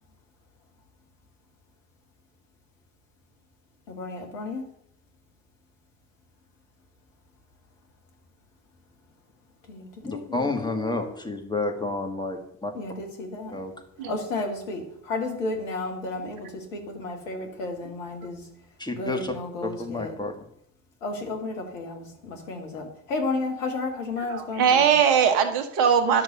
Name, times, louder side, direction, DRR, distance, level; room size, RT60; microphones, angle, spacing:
voice 1, 3.9-4.6 9.7-10.8 12.8-13.6 14.1-18.4 18.9-20.1 21.0-24.9, left 3 dB, 75° left, 3 dB, 2.0 m, -32 dB
voice 2, 10.0-12.7 13.5-13.7 18.8-19.3 19.6-20.4, left 2 dB, 10° left, 3 dB, 2.2 m, -30 dB
voice 3, 24.3-26.2, right 7 dB, 65° right, 8 dB, 1.5 m, -20 dB
11.0 x 6.2 x 6.4 m, 0.71 s
figure-of-eight pair, 55°, 39 cm